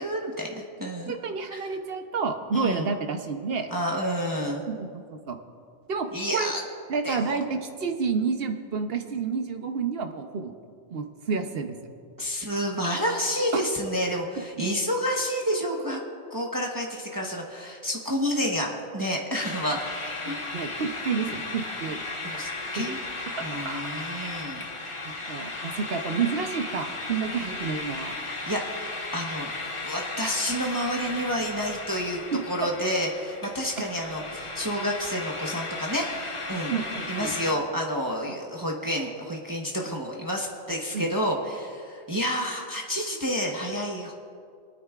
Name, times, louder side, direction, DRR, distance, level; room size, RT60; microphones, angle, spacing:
voice 1, 0.0-1.1 1.5-1.7 2.5-2.9 3.7-4.6 6.1-6.6 7.0-7.4 12.2-16.0 16.3-19.8 20.2-20.4 22.2-23.0 23.4-24.6 28.5-29.5 29.8-36.7 37.1-44.1, equal, 20° right, -1 dB, 1.0 m, -29 dB
voice 2, 1.1-3.7 4.8-4.9 5.3-5.4 5.9-6.5 6.9-10.5 10.9-11.8 13.5-13.6 20.2-22.0 22.8-22.9 23.6-23.9 25.0-28.1 32.3-32.4 36.7-37.3 40.9-41.0, right 5 dB, 60° right, 6 dB, 1.0 m, -29 dB
sound 1, 19.3-37.5, left 2 dB, 30° left, 1.0 m, -35 dB
26.0 x 9.2 x 2.4 m, 2.3 s
omnidirectional pair, 1.2 m